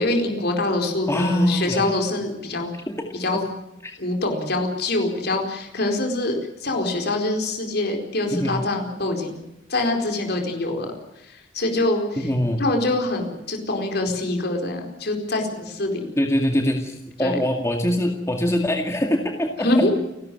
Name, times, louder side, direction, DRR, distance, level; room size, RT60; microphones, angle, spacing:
voice 1, 0.0-2.7 3.2-3.4 4.0-9.4 9.7-10.9 11.3-12.3 12.6-16.0 17.2-17.4 19.6-19.9, left 2 dB, 55° left, 3 dB, 4.5 m, -24 dB
voice 2, 1.1-1.9 2.9-3.1 3.3-3.5 3.8-3.9 8.3-8.6 12.2-12.7 16.2-20.0, left 1 dB, 15° left, 3 dB, 2.1 m, -23 dB
29.5 x 12.5 x 9.4 m, 0.88 s
head